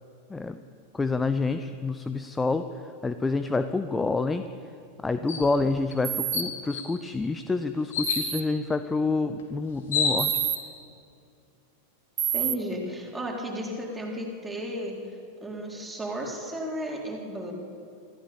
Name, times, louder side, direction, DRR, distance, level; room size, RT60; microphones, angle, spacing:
voice 1, 0.3-0.6 0.9-2.6 3.0-4.4 5.0-10.3, left 3 dB, 10° left, 10 dB, 0.8 m, -27 dB
sound 1, 5.3-5.5 5.9-6.0 6.3-6.9 7.9-8.2 9.4-9.5 9.7-10.6, left 5 dB, 60° left, 3.9 m, -28 dB
sound 2, 6.0-6.4 8.0-8.4 10.2-10.6 12.2-12.6, right 12 dB, 30° right, 0.8 m, -28 dB
voice 2, 12.3-15.0 15.4-17.5, equal, 10° right, -1 dB, 4.2 m, -34 dB
26.5 x 15.0 x 7.1 m, 2.5 s
figure-of-eight pair, 90°, 0 cm